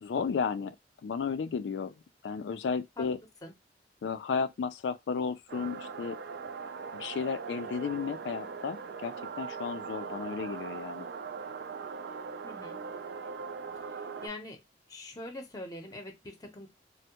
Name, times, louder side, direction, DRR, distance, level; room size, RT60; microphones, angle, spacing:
voice 1, 0.0-0.8 1.0-1.9 2.2-3.2 4.0-6.2 6.9-11.1, left 5 dB, 75° left, 0.3 m, -33 dB
sound 1, 5.5-14.3, right 5 dB, 60° right, 0.4 m, -40 dB
voice 2, 12.4-12.8 14.2-14.6 14.9-16.7, left 1 dB, 20° left, 0.6 m, -43 dB
3.3 x 2.1 x 2.8 m
head